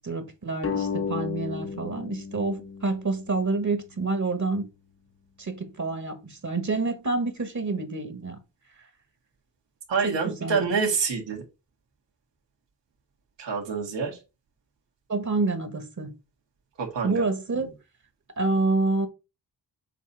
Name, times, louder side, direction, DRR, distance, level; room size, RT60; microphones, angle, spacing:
voice 1, 0.0-4.7 5.4-8.4 10.0-10.6 15.1-16.1 17.0-17.7 18.4-19.1, right 3 dB, 45° right, 1.4 m, -28 dB
sound 1, 0.6-3.8, left 6 dB, 30° left, 0.9 m, -33 dB
voice 2, 9.9-11.4 13.4-14.2 16.8-17.3, right 5 dB, 80° right, 2.0 m, -27 dB
7.4 x 2.7 x 5.5 m
cardioid pair, 80°, 42 cm